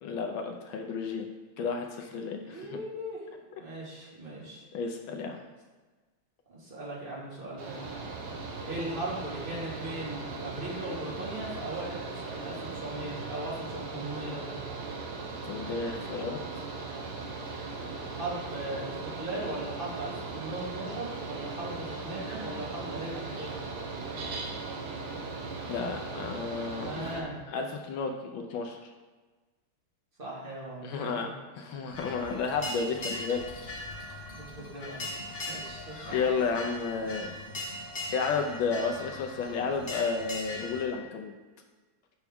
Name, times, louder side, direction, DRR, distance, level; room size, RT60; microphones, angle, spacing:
voice 1, 0.0-1.3 1.6-2.7 4.7-5.4 15.4-16.4 25.7-27.2 27.5-28.9 30.8-31.3 31.6-33.4 33.9-34.3 36.1-37.3 38.1-41.3, left 5 dB, 75° left, 3 dB, 1.3 m, -32 dB
voice 2, 2.4-3.3 3.5-4.6 6.5-7.8 8.6-14.6 18.1-23.6 26.8-27.4 30.2-31.3 34.3-35.1 35.5-36.3, right 1 dB, 25° right, -5 dB, 1.9 m, -38 dB
Mechanical fan, 7.6-27.2, right 3 dB, 80° right, 1.8 m, -38 dB
sound 1, 31.9-40.8, left 1 dB, 35° left, 0.9 m, -40 dB
8.3 x 5.8 x 3.5 m, 1.3 s
omnidirectional pair, 2.4 m